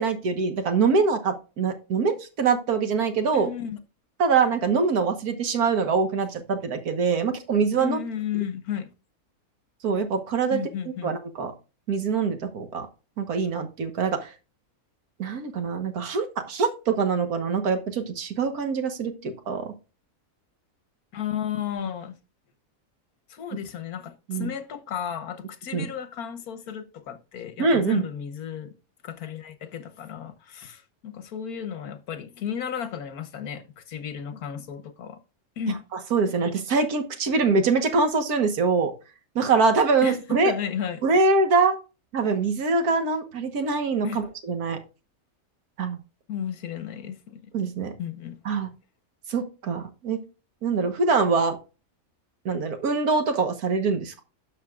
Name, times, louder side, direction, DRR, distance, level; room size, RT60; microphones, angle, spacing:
voice 1, 0.0-3.5 4.2-8.0 9.8-10.6 11.0-11.5 11.9-12.9 13.2-14.3 15.2-19.7 24.3-24.5 25.7-25.9 27.6-28.1 36.1-38.9 39.4-40.5 41.0-41.8 42.1-44.8 45.8-46.0 47.5-47.9 48.5-48.7 49.3-50.2 50.6-51.6 52.5-54.2, right 4 dB, 85° right, 1.8 m, -24 dB
voice 2, 3.3-3.8 7.8-8.9 10.5-11.2 21.1-22.1 23.3-28.7 29.0-35.2 35.6-35.8 40.0-41.0 44.0-44.2 46.3-47.5 48.0-48.4, left 8 dB, 80° left, 1.5 m, -33 dB
11.5 x 6.7 x 2.4 m
omnidirectional pair, 1.6 m